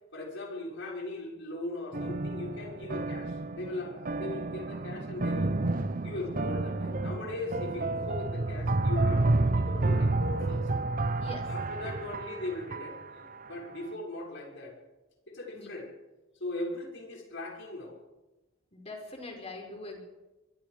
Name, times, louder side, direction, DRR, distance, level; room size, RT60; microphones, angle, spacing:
voice 1, 0.1-5.5 6.0-10.7 11.4-14.8 15.3-15.9 16.4-18.0, left 2 dB, 60° left, -1 dB, 6.3 m, -39 dB
sound 1, 1.9-13.4, right 2 dB, 40° right, 0.8 m, -30 dB
voice 2, 11.2-11.5 15.5-15.7 18.7-20.0, left 2 dB, 30° left, 2 dB, 5.2 m, -42 dB
24.5 x 23.0 x 5.0 m, 1.1 s
head